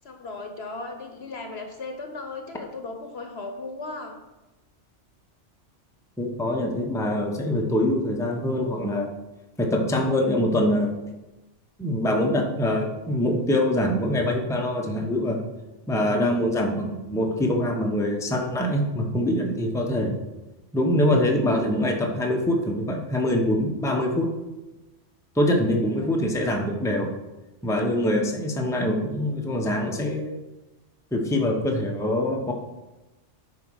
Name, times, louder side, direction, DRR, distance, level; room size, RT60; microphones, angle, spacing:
voice 1, 0.0-4.2 25.8-26.3, left 3 dB, 60° left, 4 dB, 1.3 m, -37 dB
voice 2, 6.2-9.1 9.6-11.0 11.8-15.4 15.9-20.1 20.7-24.3 25.3-27.1 27.6-30.3 31.1-32.5, left 1 dB, 5° left, 1 dB, 0.9 m, -24 dB
9.1 x 4.7 x 6.4 m, 1.0 s
omnidirectional pair, 1.2 m